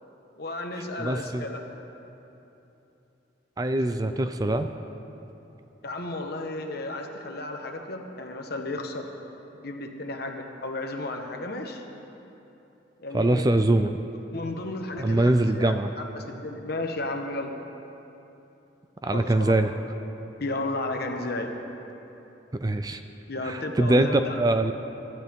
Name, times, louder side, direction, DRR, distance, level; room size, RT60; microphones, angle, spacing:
voice 1, 0.4-1.6 3.7-3.8 5.8-9.1 9.5-11.8 13.0-13.4 14.3-17.6 19.1-19.5 20.4-21.6 23.3-24.4, left 2 dB, 55° left, 3 dB, 1.3 m, -33 dB
voice 2, 1.0-1.5 3.6-4.7 13.1-14.0 15.0-15.9 19.0-19.7 22.6-23.0 23.4-24.7, right 1 dB, 20° right, 8 dB, 0.4 m, -23 dB
23.5 x 12.5 x 3.7 m, 3.0 s
head